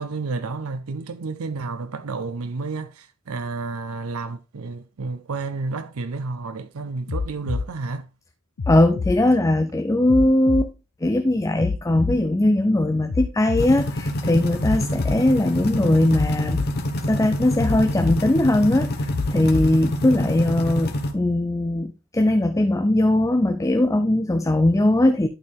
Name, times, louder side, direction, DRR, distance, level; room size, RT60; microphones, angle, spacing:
voice 1, 0.0-8.1, right 3 dB, 85° right, 0.6 m, -31 dB
sound 1, 7.1-7.7 8.6-9.2 10.1-10.7 11.6-12.2 13.1-13.7 14.6-15.2 16.1-16.7 17.6-18.2 19.1-19.7 20.6-20.7, left 4 dB, 85° left, 0.6 m, -26 dB
voice 2, 8.7-10.7 11.0-16.6 17.1-25.3, left 1 dB, 15° left, 0.5 m, -20 dB
sound 2, 13.6-21.1, left 1 dB, 50° left, 1.2 m, -27 dB
11.5 x 4.5 x 3.5 m
head